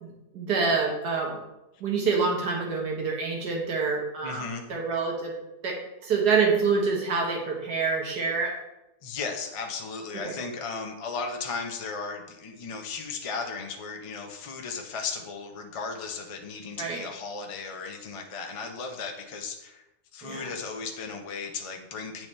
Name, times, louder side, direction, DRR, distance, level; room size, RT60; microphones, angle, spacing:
voice 1, 0.0-1.4 1.8-5.3 5.6-5.8 6.0-8.5 10.3-10.4 16.8-17.0 20.2-20.5, right 4 dB, 80° right, 0 dB, 1.8 m, -26 dB
voice 2, 4.2-4.7 9.0-19.8 20.1-22.3, left 4 dB, 50° left, 3 dB, 0.4 m, -36 dB
8.5 x 4.8 x 3.2 m, 0.94 s
omnidirectional pair, 1.7 m